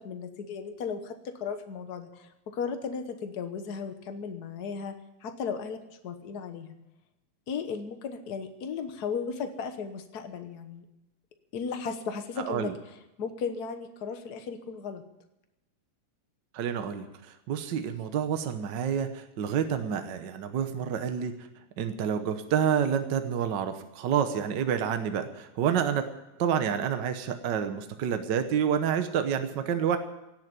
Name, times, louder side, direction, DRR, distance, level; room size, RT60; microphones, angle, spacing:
voice 1, 0.0-6.8 7.5-10.8 11.5-15.0, left 6 dB, 60° left, 7 dB, 1.0 m, -36 dB
voice 2, 16.5-21.3 21.8-26.0 26.4-30.0, right 8 dB, 75° right, 8 dB, 1.0 m, -28 dB
17.0 x 8.1 x 9.0 m, 0.91 s
omnidirectional pair, 3.4 m